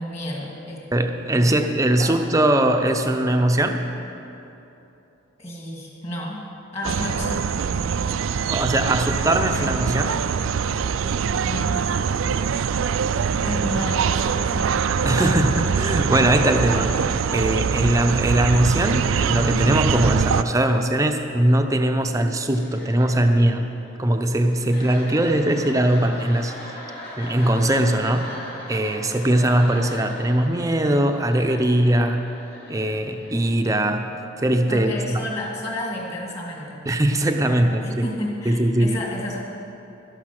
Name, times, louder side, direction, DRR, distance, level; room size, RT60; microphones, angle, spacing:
voice 1, 0.0-0.9 1.3-1.6 1.9-2.1 5.4-6.5 6.7-7.5 11.4-11.8 13.3-14.7 34.7-36.8 37.2-39.4, left 1 dB, 30° left, -2 dB, 2.2 m, -31 dB
voice 2, 0.9-3.9 8.5-10.2 15.0-16.9 17.3-23.7 24.0-26.7 27.2-28.3 28.7-32.3 32.7-34.1 34.4-35.2 36.9-38.1 38.4-39.1, right 1 dB, 15° right, 5 dB, 0.6 m, -20 dB
sound 1, 6.8-20.4, right 6 dB, 70° right, 0.4 m, -23 dB
sound 2, 22.5-34.1, left 1 dB, 45° left, 2.7 m, -40 dB
12.5 x 11.0 x 5.9 m, 2.9 s
head